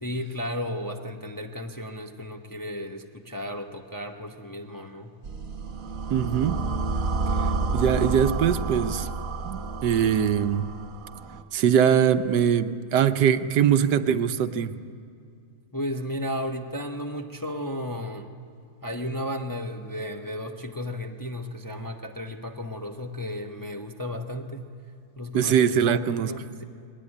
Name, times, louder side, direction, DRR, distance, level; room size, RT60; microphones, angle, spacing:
voice 1, 0.0-5.1 15.7-18.3 18.8-24.7 25.2-26.0 26.3-26.6, left 1 dB, 20° left, 3 dB, 0.6 m, -34 dB
sound 1, 5.2-11.4, right 3 dB, 55° right, 1.6 m, -30 dB
voice 2, 6.1-6.6 7.7-9.1 9.4-10.7 11.5-14.7 25.3-26.3, right 8 dB, 80° right, 11 dB, 1.4 m, -22 dB
20.5 x 19.0 x 9.9 m, 2.3 s
omnidirectional pair, 1.8 m